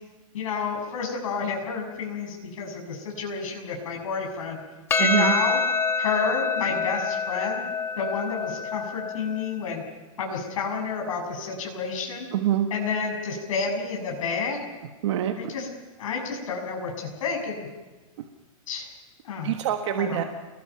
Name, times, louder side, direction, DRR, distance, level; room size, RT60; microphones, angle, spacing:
voice 1, 0.3-4.6 5.0-5.6 6.0-7.6 8.0-9.8 10.2-12.3 12.7-14.6 15.4-15.7 16.0-17.7 18.7-18.9 19.2-19.5 20.0-20.3, left 5 dB, 65° left, 0 dB, 7.2 m, -30 dB
Percussion, 4.9-9.5, left 4 dB, 15° left, 1.1 m, -26 dB
voice 2, 5.0-5.3 12.3-12.7 15.0-15.5 19.4-20.2, right 11 dB, 55° right, 5 dB, 1.5 m, -25 dB
28.5 x 20.5 x 5.8 m, 1.2 s
supercardioid pair, 170°, 18 cm